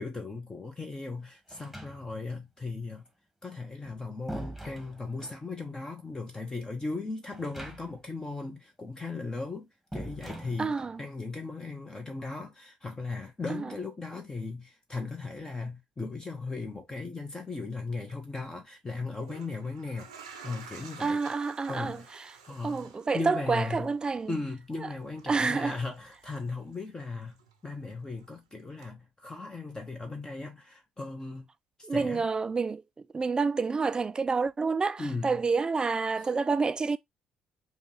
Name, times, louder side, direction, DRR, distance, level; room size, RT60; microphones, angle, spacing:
voice 1, 0.0-3.1 3.4-20.1 20.4-21.2 21.7-23.9 24.3-31.5 31.9-32.3 35.0-35.5 36.2-36.3, left 3 dB, 20° left, 1.0 m, -37 dB
sound 1, 1.5-2.4 3.6-5.5 7.3-8.1 8.4-8.5 9.9-11.0, right 1 dB, ahead, 1.5 m, -43 dB
voice 2, 10.6-11.0 13.5-13.7 21.0-22.3 22.6-24.3 25.3-25.8 31.8-32.8 33.1-37.0, right 4 dB, 25° right, 0.4 m, -28 dB
sound 2, 17.9-18.1 19.0-27.0 27.3-28.4 28.8-28.9, right 6 dB, 90° right, 0.8 m, -51 dB
5.1 x 2.4 x 3.1 m
hypercardioid pair, 55°, 3 cm